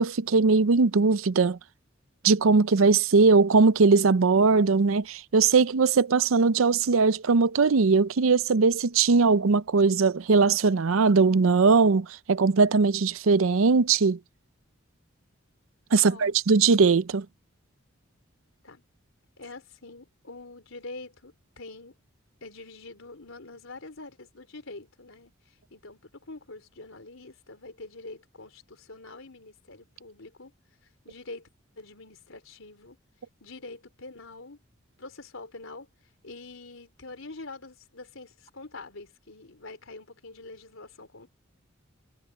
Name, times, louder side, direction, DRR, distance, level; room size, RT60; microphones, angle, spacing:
voice 1, 0.0-1.6 2.2-14.2 15.9-17.3, right 4 dB, 90° right, 0.6 m, -20 dB
voice 2, 16.0-16.3 18.6-18.8 19.4-22.0 22.4-30.5 31.1-31.5 31.8-33.0 33.4-34.6 35.0-35.9 36.2-41.3, left 3 dB, 80° left, 3.6 m, -45 dB
head